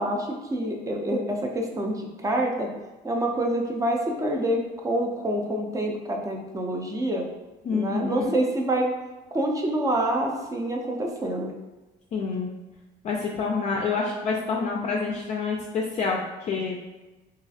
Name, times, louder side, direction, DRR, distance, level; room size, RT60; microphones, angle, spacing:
voice 1, 0.0-2.7 3.0-7.3 7.7-8.9 9.3-11.5, right 1 dB, 20° right, 1 dB, 0.5 m, -27 dB
voice 2, 7.6-8.3 12.1-12.5 13.0-16.8, left 4 dB, 40° left, -1 dB, 0.4 m, -27 dB
3.0 x 2.4 x 2.7 m, 1.1 s
cardioid pair, 110°, 17 cm